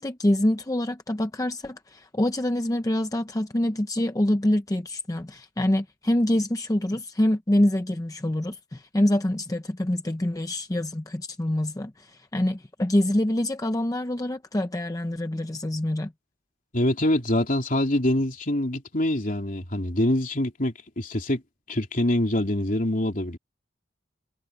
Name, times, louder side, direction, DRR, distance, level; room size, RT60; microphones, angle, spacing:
voice 1, 0.0-16.1, left 1 dB, 20° left, 0.6 m, -25 dB
voice 2, 16.7-21.4 21.7-23.4, left 1 dB, 45° left, 3.5 m, -25 dB
head